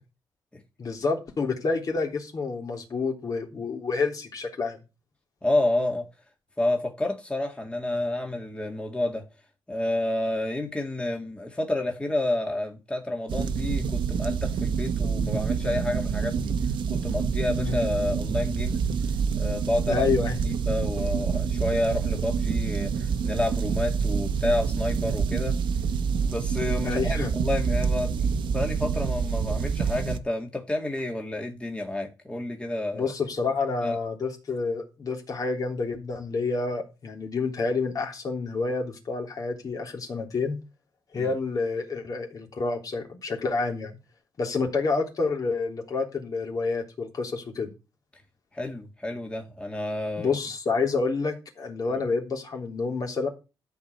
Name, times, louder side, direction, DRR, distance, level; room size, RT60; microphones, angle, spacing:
voice 1, 0.8-4.8 17.6-17.8 19.9-20.4 26.8-27.3 32.9-40.6 41.1-43.9 44.4-47.7 50.2-53.3, left 4 dB, 45° left, 3.5 m, -28 dB
voice 2, 5.4-6.1 6.6-9.3 9.7-16.6 16.9-18.9 19.3-20.1 20.4-25.6 26.3-33.1 33.8-34.0 41.1-41.3 48.5-50.4 51.9-52.0, left 1 dB, 15° left, 2.1 m, -29 dB
sound 1, 13.3-30.2, right 6 dB, 75° right, 1.2 m, -27 dB
13.0 x 4.9 x 8.1 m
cardioid pair, 100°, 8 cm